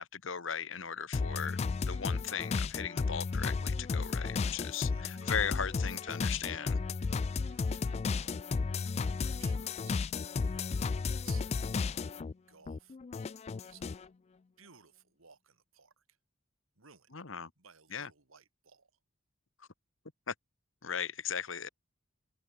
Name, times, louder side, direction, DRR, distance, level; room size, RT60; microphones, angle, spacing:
voice 1, 0.0-1.6 1.9-6.8 17.1-17.5 17.9-18.1 20.3-20.4 20.8-21.7, left 7 dB, 65° left, 1.3 m, -37 dB
sound 1, 1.1-12.3 12.7-14.0, left 4 dB, 30° left, 0.3 m, -33 dB
voice 2, 4.9-5.3 7.4-8.4 8.8-10.5 11.1-11.9 12.5-13.0 13.6-14.1 14.6-16.0 16.8-17.1 17.6-18.9, right 7 dB, 80° right, 2.6 m, -60 dB
head